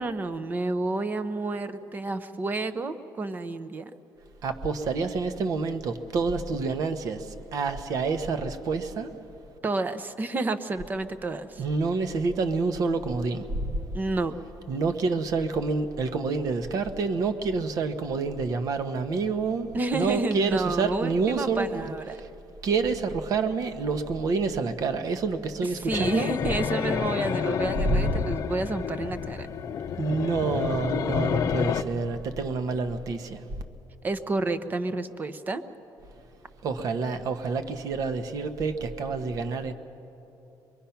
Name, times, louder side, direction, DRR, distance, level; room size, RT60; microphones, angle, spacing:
voice 1, 0.0-3.9 9.6-11.6 13.9-14.3 19.7-22.2 25.8-29.5 34.0-35.6, right 2 dB, 25° right, 12 dB, 0.8 m, -30 dB
voice 2, 4.4-9.1 11.6-13.8 14.7-21.9 22.1-22.3 22.6-26.3 27.9-28.3 30.0-33.4 36.6-39.7, right 4 dB, 50° right, 9 dB, 1.1 m, -28 dB
sound 1, 25.9-31.8, left 7 dB, 45° left, 0.6 m, -29 dB
25.0 x 22.0 x 5.8 m, 2.9 s
cardioid pair, 165°, 8 cm